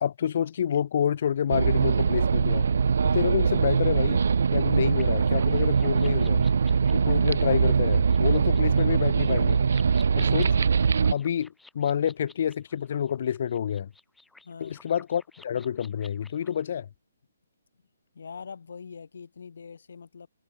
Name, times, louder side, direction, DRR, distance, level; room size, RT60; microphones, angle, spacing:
voice 1, 0.0-2.7 3.0-4.2 4.5-6.5 6.9-9.6 10.2-10.6 11.1-13.9 14.6-16.9, left 9 dB, 45° left, 0.8 m, -28 dB
sound 1, 1.5-11.1, right 6 dB, 65° right, 0.9 m, -22 dB
sound 2, 4.9-16.6, left 3 dB, 5° left, 2.5 m, -55 dB
voice 2, 14.4-14.8 18.1-20.3, left 6 dB, 65° left, 5.5 m, -43 dB
hypercardioid pair, 165°, 0 cm